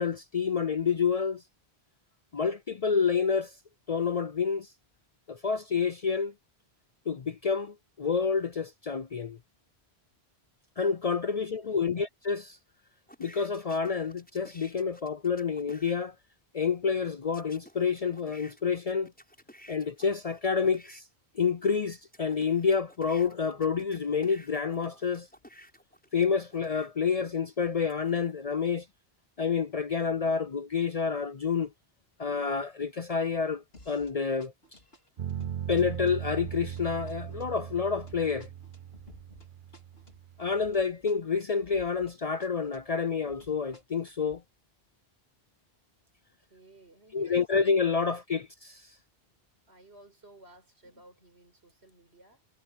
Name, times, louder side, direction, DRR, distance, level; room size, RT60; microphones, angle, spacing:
voice 1, 0.0-1.4 2.3-3.5 3.9-4.7 5.3-6.3 7.1-9.4 10.8-12.6 13.2-16.1 16.5-19.1 19.7-21.0 21.4-25.3 26.1-28.9 29.4-31.7 32.2-34.5 35.7-38.5 40.4-44.4 47.1-48.5, left 6 dB, 45° left, 0.5 m, -28 dB
voice 2, 11.6-12.0 46.4-48.5 49.7-52.5, right 2 dB, 80° right, 5.4 m, -56 dB
sound 1, 13.1-16.0 17.3-21.0 21.6-26.9 27.5-28.3, equal, 10° left, 7.3 m, -54 dB
sound 2, 33.7-34.1 34.4-42.1 42.4-44.4, left 1 dB, 70° left, 5.0 m, -55 dB
sound 3, 35.2-40.7, right 9 dB, 55° right, 0.9 m, -39 dB
omnidirectional pair, 1.1 m